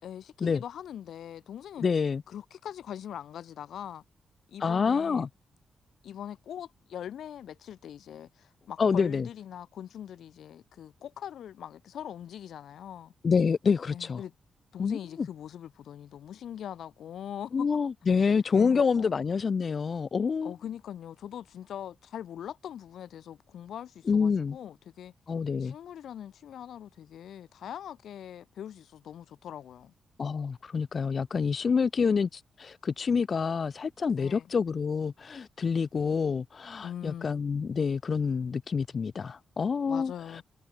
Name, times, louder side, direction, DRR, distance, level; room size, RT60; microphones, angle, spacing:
voice 1, 0.0-1.9 2.3-4.0 4.5-5.3 6.0-13.1 13.9-14.3 14.7-17.7 18.2-18.3 18.6-19.1 20.4-25.1 25.6-29.9 34.2-34.5 36.8-37.4 39.9-40.4, left 10 dB, 85° left, 4.7 m, -42 dB
voice 2, 1.8-2.2 4.6-5.3 8.8-9.3 13.2-14.2 14.8-15.3 17.5-20.5 24.1-24.6 25.3-25.7 30.2-40.4, left 5 dB, 50° left, 0.6 m, -27 dB
cardioid pair, 95°, 0 cm